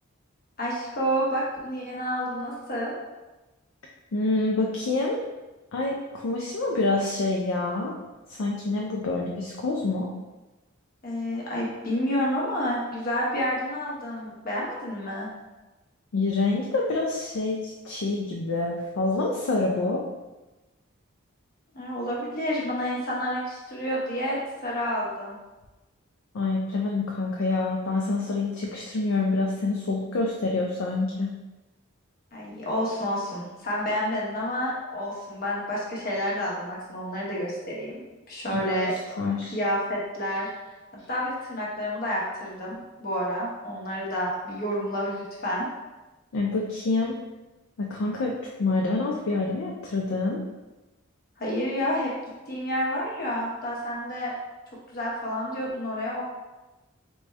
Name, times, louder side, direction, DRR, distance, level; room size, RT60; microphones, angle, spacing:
voice 1, 0.6-2.9 11.0-15.3 21.7-25.4 32.3-39.0 39.5-40.5 41.1-45.7 51.4-52.1 52.5-54.3 54.9-56.2, equal, 45° left, -5 dB, 1.0 m, -29 dB
voice 2, 4.1-5.2 5.7-8.0 8.3-10.1 16.1-20.0 26.3-31.3 38.5-39.6 46.3-47.1 47.8-48.3 48.6-50.4, left 3 dB, 80° left, -1 dB, 0.4 m, -27 dB
4.1 x 2.3 x 3.2 m, 1.1 s
head